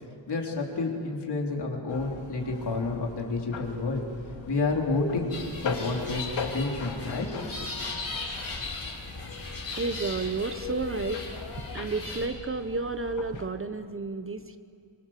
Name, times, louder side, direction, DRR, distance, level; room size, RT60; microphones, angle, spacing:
voice 1, 0.3-4.0 4.5-5.4 5.6-7.3 7.6-7.7, left 3 dB, 60° left, 0 dB, 3.8 m, -29 dB
sound 1, 1.9-13.5, left 5 dB, 85° left, 2.6 m, -40 dB
sound 2, 5.3-12.3, left 3 dB, 30° left, 6.0 m, -38 dB
voice 2, 9.8-11.2 11.7-14.6, right 4 dB, 30° right, 10 dB, 0.9 m, -31 dB
26.5 x 25.0 x 7.5 m, 2.4 s
wide cardioid pair, 140°, 44 cm